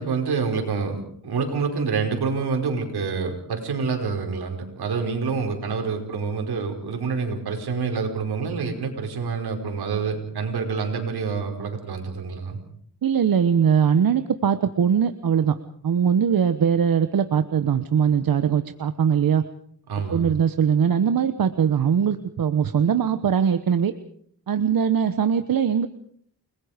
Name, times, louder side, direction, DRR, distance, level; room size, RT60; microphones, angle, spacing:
voice 1, 0.0-12.6 19.9-20.3, right 5 dB, 80° right, 3 dB, 5.1 m, -27 dB
voice 2, 13.0-15.5 15.8-19.4 20.1-23.9 24.5-25.9, right 7 dB, 65° right, 10 dB, 1.2 m, -21 dB
30.0 x 20.5 x 5.1 m, 0.64 s
wide cardioid pair, 100°, 38 cm